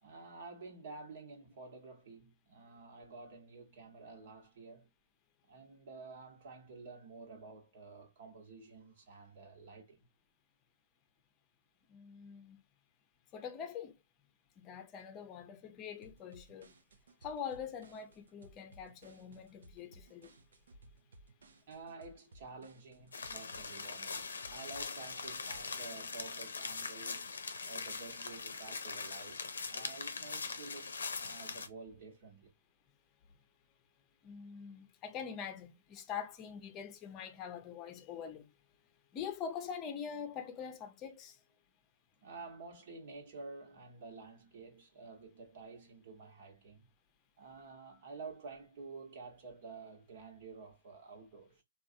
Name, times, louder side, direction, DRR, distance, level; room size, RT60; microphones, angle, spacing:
voice 1, 0.0-4.9 5.5-10.1 21.7-27.3 27.6-29.4 29.7-32.5 42.2-46.9 47.4-51.6, right 4 dB, 55° right, 1.2 m, -51 dB
voice 2, 11.9-12.6 13.3-13.9 14.6-16.7 17.2-20.3 34.2-38.5 39.1-41.4, left 7 dB, 25° left, 0.6 m, -44 dB
sound 1, 16.0-25.6, right 2 dB, 75° right, 0.6 m, -60 dB
sound 2, 23.1-31.7, left 4 dB, 85° left, 0.6 m, -42 dB
3.2 x 2.4 x 2.6 m
hypercardioid pair, 135°, 0 cm